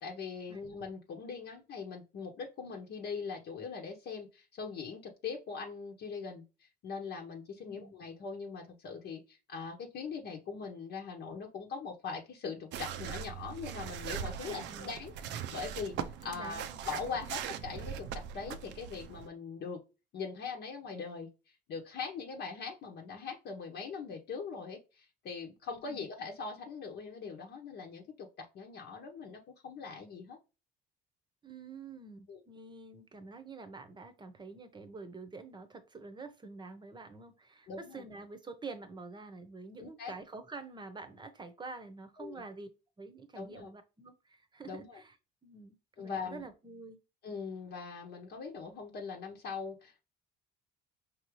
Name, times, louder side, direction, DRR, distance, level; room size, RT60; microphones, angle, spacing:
voice 1, 0.0-6.4 6.8-15.9 16.2-18.1 18.3-19.8 20.1-30.4 32.3-32.4 37.7-38.0 39.8-40.1 42.2-42.4 43.3-43.7 44.6-45.0 46.0-46.5 47.2-50.0, left 5 dB, 65° left, 1.0 m, -41 dB
sound 1, 12.7-19.3, right 8 dB, 70° right, 0.5 m, -41 dB
voice 2, 14.4-14.9 16.2-16.8 25.8-26.1 31.4-42.7 43.0-45.1 45.4-47.0, right 3 dB, 25° right, 0.8 m, -47 dB
4.9 x 2.8 x 3.1 m
cardioid pair, 95°, 19 cm